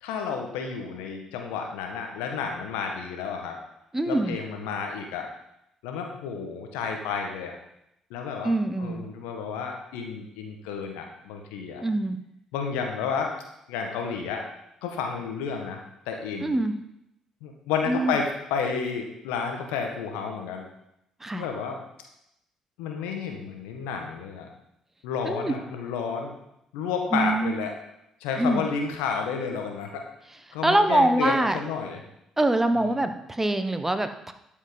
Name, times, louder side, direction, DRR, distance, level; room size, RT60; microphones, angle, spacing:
voice 1, 0.0-3.5 4.1-5.3 5.8-7.6 8.1-11.8 12.5-13.3 13.7-14.4 14.8-15.8 16.1-16.5 17.4-20.6 21.3-21.8 22.8-24.5 25.0-26.3 26.7-27.7 28.2-30.0 30.5-32.0 32.7-33.1, left 6 dB, 75° left, 3 dB, 1.5 m, -31 dB
voice 2, 3.9-4.4 8.4-9.0 11.8-12.2 16.4-16.7 17.9-18.2 21.2-21.4 25.2-25.5 27.1-27.5 28.4-28.6 30.6-31.6 32.4-34.3, right 1 dB, 15° right, 9 dB, 1.1 m, -24 dB
12.5 x 5.6 x 5.3 m, 0.81 s
hypercardioid pair, 50°, 2 cm